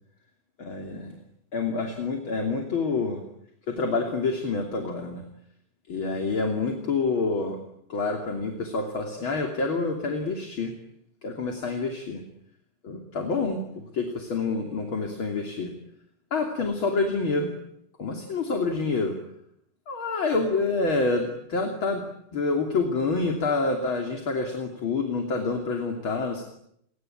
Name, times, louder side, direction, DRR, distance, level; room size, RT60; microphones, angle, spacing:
voice 1, 0.6-1.2 1.5-3.2 3.7-5.2 5.9-7.6 7.9-10.7 11.2-12.2 12.8-15.7 16.3-17.5 18.0-19.1 19.9-22.0 22.3-26.4, left 3 dB, 30° left, 4 dB, 3.1 m, -27 dB
30.0 x 22.0 x 9.1 m, 0.75 s
omnidirectional pair, 5.0 m